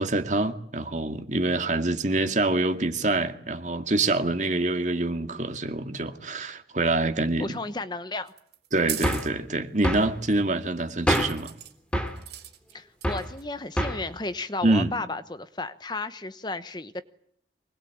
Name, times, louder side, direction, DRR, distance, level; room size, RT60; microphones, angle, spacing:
voice 1, 0.0-7.5 8.7-11.5 14.6-14.9, right 2 dB, 45° right, 2.3 m, -26 dB
voice 2, 7.4-8.3 12.7-17.0, left 2 dB, 25° left, 1.0 m, -33 dB
sound 1, 8.3-9.3 11.1-11.7 12.2-12.7 13.0-13.4, right 12 dB, 65° right, 3.9 m, -37 dB
sound 2, 9.0-9.3 9.8-10.1 11.1-11.4 11.9-12.2 13.0-13.3 13.8-14.1, equal, 5° left, 2.7 m, -26 dB
24.5 x 21.0 x 8.7 m
head